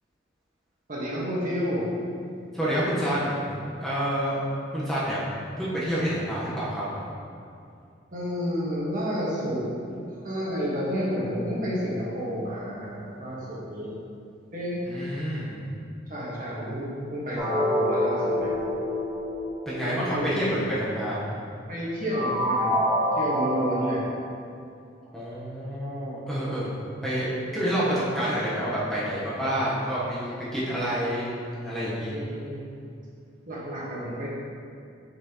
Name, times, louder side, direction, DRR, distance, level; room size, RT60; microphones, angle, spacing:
voice 1, 0.9-1.8 8.1-13.9 14.5-15.1 16.1-18.5 19.8-20.4 21.7-22.8 23.1-24.0 27.1-27.4 31.9-32.7 33.5-34.3, equal, 45° right, -6 dB, 1.5 m, -30 dB
voice 2, 2.5-3.5 3.8-4.4 4.7-5.2 5.6-7.1 14.9-15.6 19.7-21.3 25.1-26.7 27.0-31.3 31.6-32.1, equal, ahead, -9 dB, 1.1 m, -28 dB
sound 1, 17.4-20.3 22.1-24.0, equal, 25° right, 1.5 m, -26 dB
6.8 x 5.8 x 3.0 m, 2.5 s
head